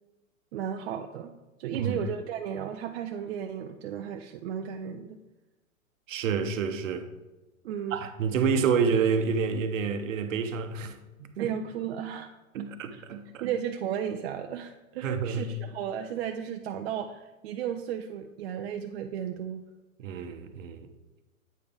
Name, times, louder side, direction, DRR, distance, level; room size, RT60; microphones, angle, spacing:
voice 1, 0.5-1.3 1.6-5.2 7.6-8.0 11.4-12.3 12.9-13.0 13.4-19.6, right 9 dB, 50° right, 0.5 m, -34 dB
voice 2, 6.1-7.1 7.9-11.5 12.5-13.5 15.0-15.5 20.0-20.9, right 6 dB, 65° right, 0.9 m, -28 dB
8.5 x 5.1 x 3.5 m
hypercardioid pair, 120°, 41 cm